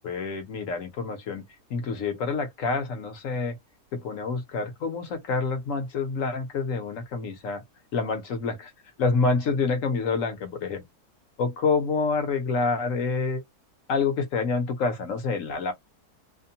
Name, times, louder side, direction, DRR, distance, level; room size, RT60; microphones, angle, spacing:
voice 1, 0.0-3.6 3.9-7.6 7.9-8.7 9.0-10.8 11.4-13.4 13.9-15.7, left 4 dB, 65° left, 1.0 m, -27 dB
2.8 x 2.1 x 2.7 m
omnidirectional pair, 1.6 m